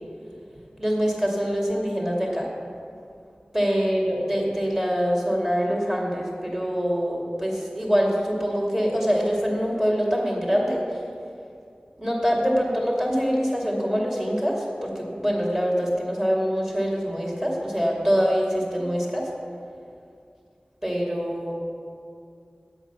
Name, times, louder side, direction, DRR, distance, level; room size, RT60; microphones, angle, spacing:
voice 1, 0.8-2.5 3.5-10.8 12.0-19.3 20.8-21.6, equal, 15° right, -2 dB, 2.4 m, -24 dB
9.0 x 8.1 x 6.0 m, 2.4 s
wide cardioid pair, 45°, 3 cm